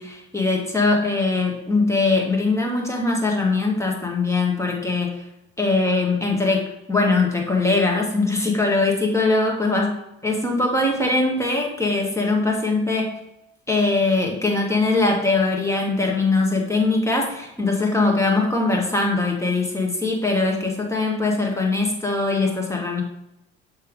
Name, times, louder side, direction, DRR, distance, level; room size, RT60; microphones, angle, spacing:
voice 1, 0.0-5.1 5.6-9.9 10.2-13.1 13.7-23.0, left 3 dB, 10° left, 0 dB, 1.8 m, -21 dB
6.7 x 3.5 x 5.1 m, 0.86 s
hypercardioid pair, 55°, 31 cm